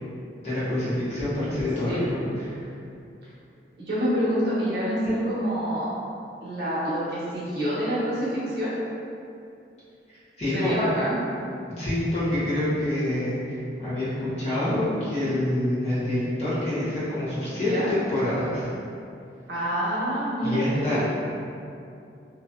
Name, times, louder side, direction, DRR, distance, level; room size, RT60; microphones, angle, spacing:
voice 1, 0.4-2.6 10.4-10.7 11.8-18.7 20.4-21.0, left 1 dB, 35° left, -12 dB, 1.0 m, -26 dB
voice 2, 3.8-5.9 6.4-8.7 10.5-11.2 17.5-17.9 19.5-21.0, equal, 60° right, -9 dB, 0.9 m, -27 dB
2.8 x 2.7 x 2.3 m, 2.6 s
head